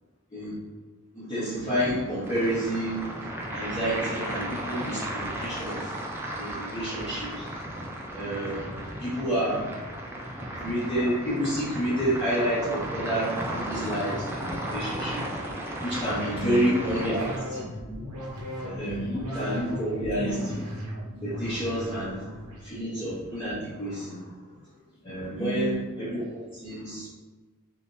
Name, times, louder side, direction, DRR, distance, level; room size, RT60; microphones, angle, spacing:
voice 1, 1.1-3.1 3.5-5.9 6.3-7.5 8.1-9.7 10.5-15.2 15.8-17.6 18.6-18.9 19.3-20.6 21.2-24.3 25.0-27.1, equal, 20° left, -13 dB, 1.1 m, -29 dB
sound 1, 2.2-17.4, right 1 dB, 10° right, 0.4 m, -35 dB
voice 2, 16.3-16.7 18.8-19.3 20.1-20.5 22.7-22.8 24.2-25.8, right 1 dB, 60° left, -11 dB, 0.9 m, -35 dB
sound 2, 16.4-22.8, equal, 90° right, 0.9 m, -37 dB
3.4 x 2.8 x 2.6 m, 1.3 s
head